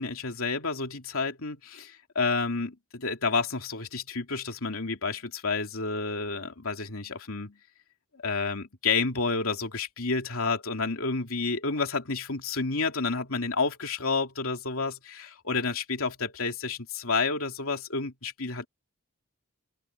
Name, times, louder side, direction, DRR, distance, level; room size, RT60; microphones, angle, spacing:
voice 1, 0.0-7.6 8.1-18.7, left 4 dB, 75° left, 3.0 m, -30 dB
open air
head